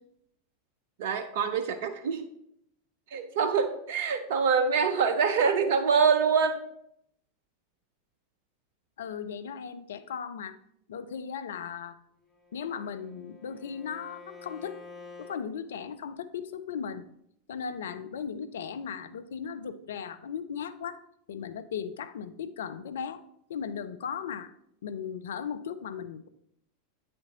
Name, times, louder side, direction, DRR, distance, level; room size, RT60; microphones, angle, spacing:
voice 1, 1.0-2.3 3.1-6.6, right 6 dB, 55° right, 8 dB, 0.4 m, -25 dB
voice 2, 9.0-10.6 10.9-12.0 12.5-14.8 15.2-17.1 17.5-21.0 21.3-23.2 23.5-24.5 24.8-26.3, left 7 dB, 65° left, 12 dB, 0.3 m, -37 dB
Bowed string instrument, 12.2-15.4, left 4 dB, 20° left, 0.9 m, -49 dB
8.6 x 4.3 x 2.7 m, 0.75 s
figure-of-eight pair, 85°, 0 cm